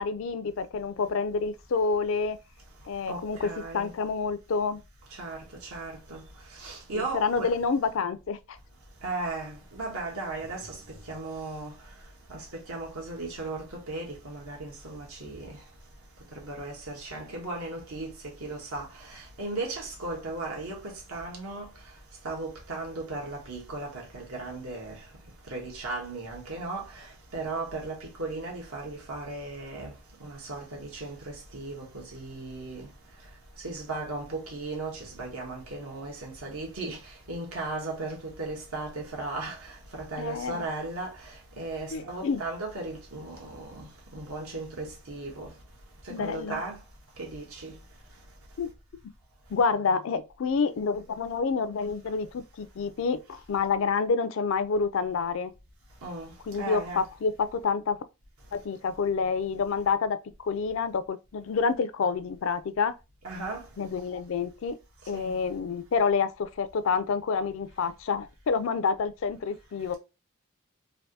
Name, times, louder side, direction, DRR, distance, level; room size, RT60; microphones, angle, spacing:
voice 1, 0.0-2.4 2.9-4.8 6.9-8.6 40.2-40.6 41.9-42.4 46.1-46.6 48.6-48.7 49.5-55.5 56.5-58.0 58.5-62.9 63.8-64.8 65.1-69.9, left 5 dB, 60° left, 0.4 m, -28 dB
voice 2, 3.1-3.9 5.2-5.4 5.7-6.2 6.6-7.5 9.0-10.8 11.1-11.7 12.3-15.6 16.4-18.1 18.4-18.9 19.1-21.7 22.2-25.0 25.5-27.1 27.3-29.9 30.2-32.9 33.6-37.0 37.3-41.1 41.6-45.5 46.2-46.8 47.2-47.7 56.0-56.3 56.6-57.0 63.2-63.6 65.1-65.3, right 2 dB, 75° right, 1.2 m, -36 dB
3.3 x 2.5 x 2.7 m
head